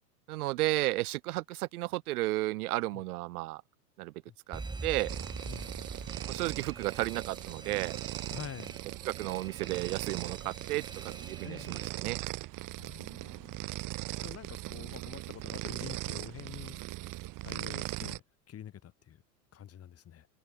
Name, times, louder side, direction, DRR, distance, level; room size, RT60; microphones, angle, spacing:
voice 1, 0.3-3.6 4.0-4.1 4.5-5.2 6.3-7.9 9.1-12.2, right 19 dB, 65° right, 3.5 m, -33 dB
Alarm, 4.5-12.2, right 3 dB, 10° right, 1.8 m, -45 dB
sound 1, 5.1-18.2, right 18 dB, 40° right, 2.3 m, -40 dB
voice 2, 8.3-8.8 10.4-10.5 11.4-11.8 12.8-16.8 17.4-19.2 19.5-20.3, left 10 dB, 30° left, 5.0 m, -47 dB
hypercardioid pair, 105°, 48 cm